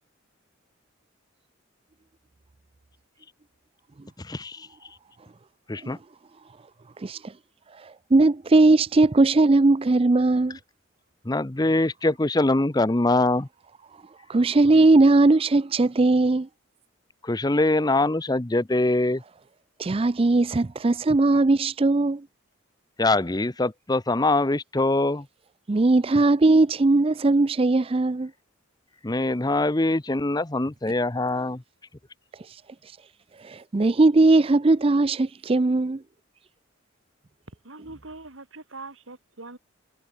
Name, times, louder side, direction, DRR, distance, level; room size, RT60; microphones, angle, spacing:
voice 1, 4.3-4.7 5.7-6.0 11.3-13.5 17.2-19.2 23.0-25.2 29.0-31.6, left 2 dB, 20° left, 0.7 m, -23 dB
voice 2, 7.0-7.3 7.8-10.6 14.3-16.5 19.8-22.2 25.7-28.3 32.5-32.6 33.4-36.0, right 2 dB, 30° right, 0.4 m, -19 dB
voice 3, 37.6-39.6, right 3 dB, 75° right, 2.8 m, -42 dB
head